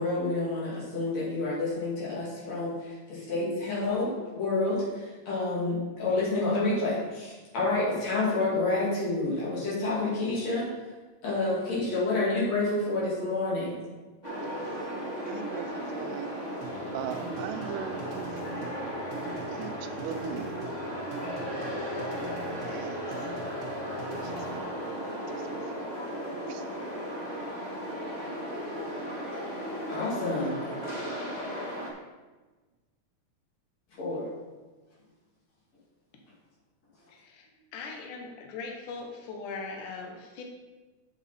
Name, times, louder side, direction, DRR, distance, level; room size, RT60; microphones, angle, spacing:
voice 1, 0.0-10.7 11.2-13.8 17.1-17.9 29.9-30.6 34.0-34.3, left 2 dB, 55° left, -6 dB, 3.4 m, -29 dB
sound 1, 14.2-31.9, equal, 90° left, 0.4 m, -35 dB
voice 2, 15.3-16.3 16.9-18.4 19.5-20.6 22.4-23.1 24.2-25.8 26.5-26.6, right 10 dB, 80° right, 9 dB, 2.1 m, -40 dB
sound 2, 16.6-24.6, right 3 dB, 45° right, 1.5 m, -45 dB
voice 3, 37.1-37.5 37.7-40.4, left 4 dB, 75° left, 2 dB, 2.5 m, -40 dB
8.1 x 7.1 x 4.2 m, 1.3 s
omnidirectional pair, 3.8 m